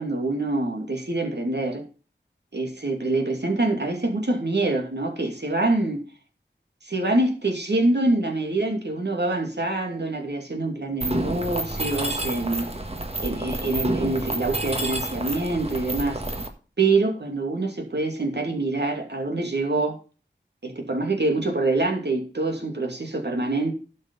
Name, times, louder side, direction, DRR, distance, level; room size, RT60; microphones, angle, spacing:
voice 1, 0.0-1.8 2.5-6.0 6.8-12.7 13.2-16.2 16.8-20.0 20.6-23.7, right 2 dB, 65° right, 2.4 m, -25 dB
Mechanisms, 11.0-16.5, right 1 dB, 30° right, 1.6 m, -29 dB
11.5 x 5.5 x 5.5 m
wide cardioid pair, 40°, 19 cm